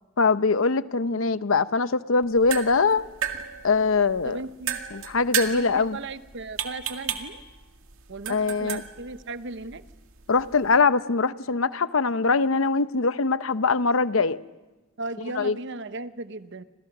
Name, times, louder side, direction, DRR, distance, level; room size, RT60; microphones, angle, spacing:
voice 1, 0.2-3.0 3.6-4.4 4.9-6.0 8.3-8.8 10.3-14.4 15.4-15.6, left 4 dB, 75° left, 0.8 m, -22 dB
sound 1, 2.2-10.8, right 8 dB, 90° right, 2.0 m, -35 dB
voice 2, 4.2-4.8 5.5-7.4 8.1-9.8 15.0-16.6, right 2 dB, 60° right, 0.9 m, -36 dB
30.0 x 26.5 x 6.1 m
head